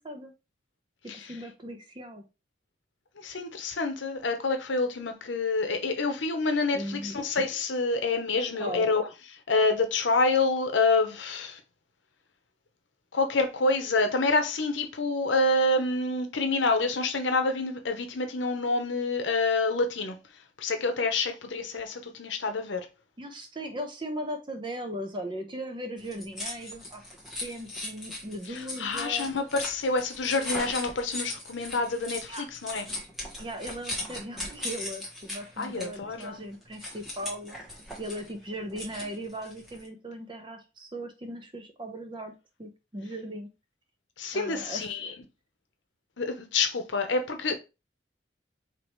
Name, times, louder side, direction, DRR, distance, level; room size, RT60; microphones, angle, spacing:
voice 1, 1.0-2.2 6.7-7.2 8.6-8.9 23.2-27.0 27.4-29.3 32.3-32.4 33.4-37.6 38.0-42.3 42.6-43.5 44.3-45.1, equal, 25° right, 0.8 m, -38 dB
voice 2, 3.2-9.1 9.5-11.6 13.1-20.2 20.6-22.9 28.5-32.9 35.6-36.4 44.2-45.1 46.2-47.5, left 3 dB, 90° left, 0.8 m, -27 dB
sound 1, 26.0-39.9, left 1 dB, ahead, 1.1 m, -39 dB
4.7 x 2.9 x 3.1 m
head